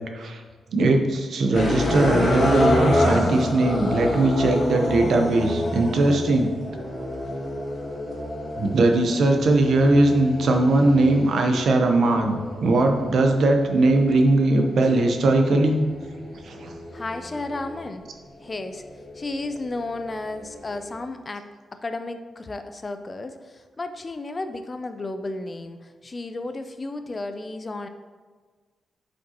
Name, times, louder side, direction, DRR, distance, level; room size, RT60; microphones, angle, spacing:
voice 1, 0.7-6.5 8.6-15.8 16.4-16.7, right 2 dB, 65° right, 4 dB, 0.8 m, -20 dB
sound 1, 1.5-17.8 18.5-21.0, left 1 dB, 45° left, 1.9 m, -28 dB
voice 2, 16.9-18.0 18.4-18.8 19.1-21.5 21.8-27.9, left 2 dB, 25° left, 8 dB, 0.4 m, -33 dB
7.7 x 5.2 x 2.9 m, 1.4 s
wide cardioid pair, 140°, 0 cm